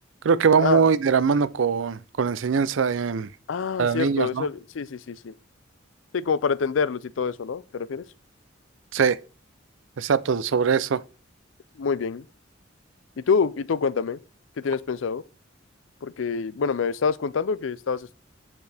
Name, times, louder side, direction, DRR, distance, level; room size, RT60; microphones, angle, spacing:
voice 1, 0.2-3.3 3.8-4.5 8.9-9.2 10.0-11.0, right 6 dB, 80° right, 0.5 m, -22 dB
voice 2, 3.5-5.3 6.1-8.1 11.8-12.3 13.2-14.2 14.6-15.2 16.0-18.2, left 5 dB, 85° left, 0.5 m, -26 dB
8.1 x 6.8 x 3.4 m
head